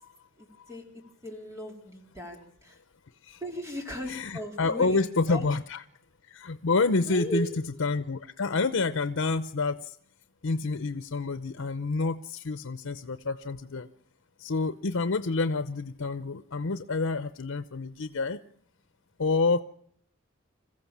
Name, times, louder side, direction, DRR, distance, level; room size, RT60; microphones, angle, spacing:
voice 1, 0.4-0.8 1.2-2.8 3.4-5.0 5.3-5.4 7.1-7.5, right 1 dB, 15° right, 2 dB, 3.2 m, -37 dB
voice 2, 4.1-5.8 6.2-7.5 7.8-10.0 10.4-13.9 14.4-18.4 19.2-19.6, left 3 dB, 90° left, 12 dB, 0.7 m, -28 dB
27.0 x 15.0 x 7.3 m, 0.69 s
head